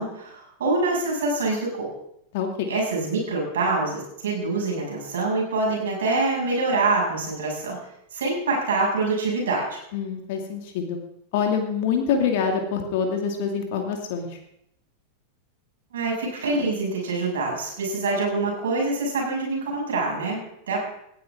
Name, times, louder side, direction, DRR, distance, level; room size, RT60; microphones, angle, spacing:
voice 1, 0.0-1.9 2.7-7.8 8.1-9.8 15.9-20.8, right 3 dB, 60° right, -1 dB, 7.0 m, -25 dB
voice 2, 2.3-2.7 9.9-11.0 11.3-14.4, left 6 dB, 50° left, 3 dB, 2.4 m, -25 dB
18.5 x 14.0 x 3.7 m, 0.75 s
figure-of-eight pair, 90°, 0 cm